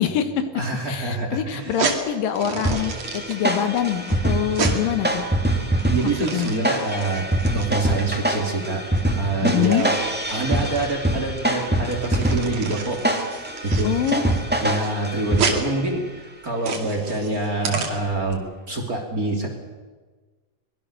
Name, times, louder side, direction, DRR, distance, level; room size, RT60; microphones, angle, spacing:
voice 1, 0.0-0.5 0.9-5.2 6.2-6.5 9.4-9.9 13.8-14.3, left 10 dB, 75° left, 9 dB, 2.9 m, -24 dB
voice 2, 0.5-1.8 5.9-8.8 9.2-10.0 10.3-13.0 13.4-14.0 14.6-19.5, right 2 dB, 25° right, 1 dB, 3.0 m, -26 dB
sound 1, 1.6-18.3, right 5 dB, 50° right, 3.3 m, -32 dB
sound 2, 2.6-15.8, right 1 dB, 5° right, 1.1 m, -25 dB
24.0 x 21.5 x 6.7 m, 1.4 s
omnidirectional pair, 4.1 m